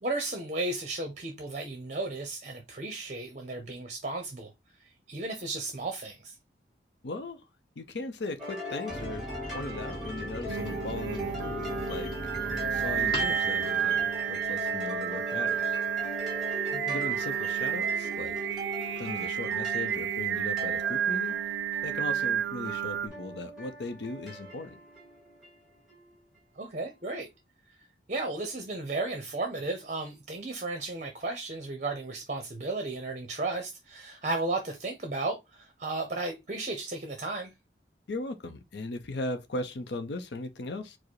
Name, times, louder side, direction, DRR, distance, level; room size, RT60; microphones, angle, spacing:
voice 1, 0.0-4.5 5.1-6.4 16.7-17.0 26.6-27.3 28.1-37.5, right 2 dB, 40° right, 0.6 m, -34 dB
voice 2, 7.0-7.4 7.8-9.3 9.5-12.1 12.5-15.8 16.9-18.4 19.0-21.4 21.8-24.8 38.1-41.0, left 2 dB, 75° left, 0.6 m, -38 dB
sound 1, 8.4-26.2, left 1 dB, ahead, 1.9 m, -39 dB
Microwave oven, 8.9-15.0 15.4-15.5 15.7-16.4, left 1 dB, 25° left, 1.1 m, -39 dB
Singing, 10.5-23.1, right 10 dB, 90° right, 0.3 m, -31 dB
4.7 x 2.0 x 4.5 m
head